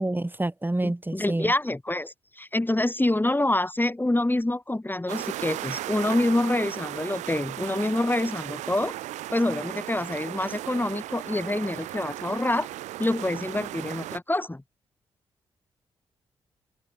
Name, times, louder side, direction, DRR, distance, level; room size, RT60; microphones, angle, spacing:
voice 1, 0.0-1.5, right 1 dB, 15° right, 4.7 m, -28 dB
voice 2, 0.8-9.0 9.3-12.7 13.0-14.6, left 1 dB, 15° left, 4.1 m, -26 dB
sound 1, 5.1-14.2, right 15 dB, 80° right, 2.9 m, -36 dB
open air
hypercardioid pair, 40°, 12 cm